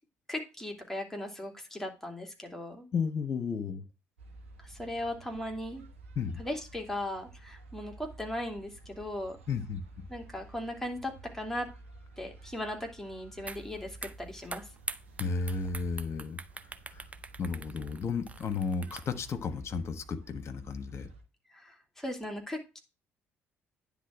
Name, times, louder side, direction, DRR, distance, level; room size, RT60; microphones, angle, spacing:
voice 1, 0.3-2.9 4.6-5.9 6.4-9.4 10.1-11.7 12.2-14.6 21.5-22.8, left 1 dB, 5° left, 2.8 m, -38 dB
voice 2, 2.9-3.8 6.2-6.4 9.5-9.8 15.2-16.4 16.9-17.0 17.4-21.1, left 5 dB, 45° left, 1.3 m, -33 dB
sound 1, 4.2-21.2, right 2 dB, 85° right, 1.2 m, -52 dB
sound 2, 13.5-13.6 13.9-19.3, right 3 dB, 20° right, 0.7 m, -43 dB
10.0 x 3.8 x 7.3 m
figure-of-eight pair, 50°, 7 cm